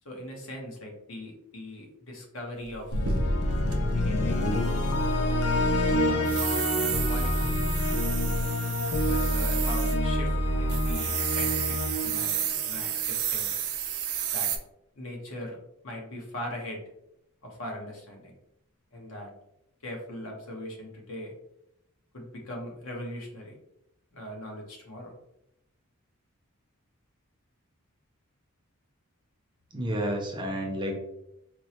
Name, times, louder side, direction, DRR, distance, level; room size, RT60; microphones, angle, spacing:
voice 1, 0.0-3.0 3.9-6.3 7.0-7.6 8.9-12.4 12.6-13.5 14.3-14.5 14.9-15.6 15.8-16.8 17.4-18.3 18.9-19.3 19.8-21.3 22.1-23.6 24.1-25.1, left 1 dB, 60° left, 0 dB, 0.9 m, -40 dB
sound 1, 2.7-3.7 5.9-10.0 10.3-10.4 10.7-14.6, right 9 dB, 85° right, 0.5 m, -31 dB
sound 2, 2.9-13.1, left 1 dB, 80° left, 0.5 m, -27 dB
voice 2, 29.7-31.0, equal, 20° right, 1 dB, 0.5 m, -30 dB
4.3 x 2.1 x 2.8 m, 0.82 s
head